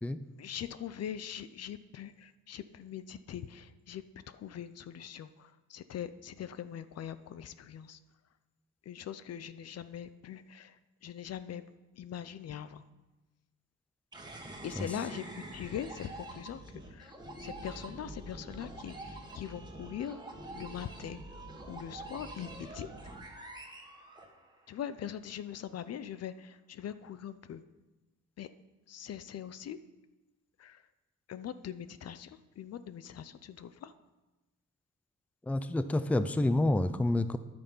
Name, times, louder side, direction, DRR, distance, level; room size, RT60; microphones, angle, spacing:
voice 1, 0.4-8.0 8.9-10.8 11.0-11.6 12.0-12.8 14.6-17.1 17.4-21.2 21.7-22.9 24.7-27.6 28.4-28.5 28.9-29.8 30.6-30.8 31.3-33.9, left 9 dB, 55° left, 13 dB, 0.6 m, -42 dB
sound 1, 14.1-24.7, right 1 dB, 15° right, 1.8 m, -46 dB
voice 2, 35.4-37.4, left 1 dB, 5° left, 12 dB, 0.5 m, -28 dB
10.5 x 8.8 x 5.6 m, 1.1 s
cardioid pair, 90°, 30 cm